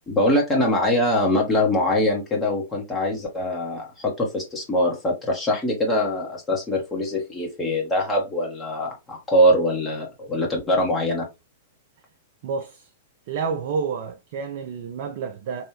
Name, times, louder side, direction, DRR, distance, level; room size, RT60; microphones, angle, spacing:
voice 1, 0.1-11.3, left 1 dB, 15° left, 1.1 m, -23 dB
voice 2, 12.4-12.9 13.3-15.7, right 5 dB, 45° right, 0.4 m, -29 dB
3.1 x 2.6 x 3.0 m
figure-of-eight pair, 100°, 0 cm